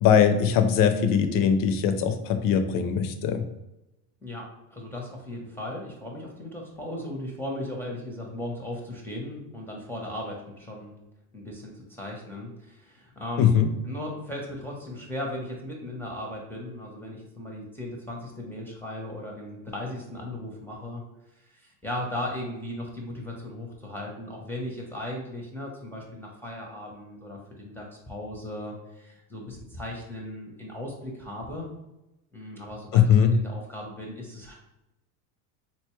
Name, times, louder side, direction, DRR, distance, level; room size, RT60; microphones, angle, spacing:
voice 1, 0.0-3.4 13.4-13.7 32.9-33.4, left 7 dB, 50° left, 9 dB, 0.5 m, -21 dB
voice 2, 4.2-11.0 11.3-13.5 13.8-21.0 21.4-31.7 32.3-33.0 33.3-34.5, left 1 dB, 5° left, -2 dB, 0.6 m, -37 dB
4.0 x 2.2 x 3.0 m, 0.92 s
supercardioid pair, 105°, 43 cm